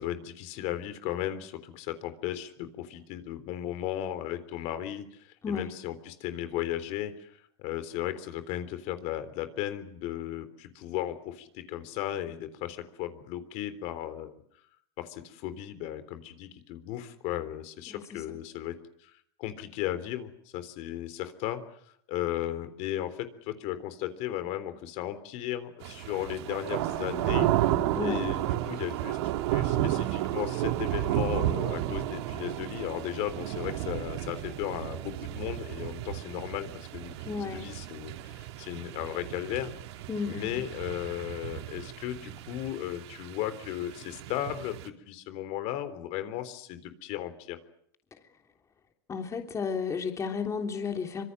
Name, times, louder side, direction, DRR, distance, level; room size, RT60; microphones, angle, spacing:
voice 1, 0.0-14.4 15.0-18.8 19.0-21.8 22.1-27.5 28.0-39.7 40.2-47.6, left 12 dB, 55° left, 11 dB, 3.6 m, -36 dB
sound 1, 25.8-44.9, right 14 dB, 75° right, 2.5 m, -32 dB
voice 2, 37.2-37.7 40.1-40.6 49.1-51.2, left 5 dB, 20° left, 4 dB, 3.3 m, -32 dB
25.5 x 25.0 x 7.7 m, 0.67 s
supercardioid pair, 135°, 14 cm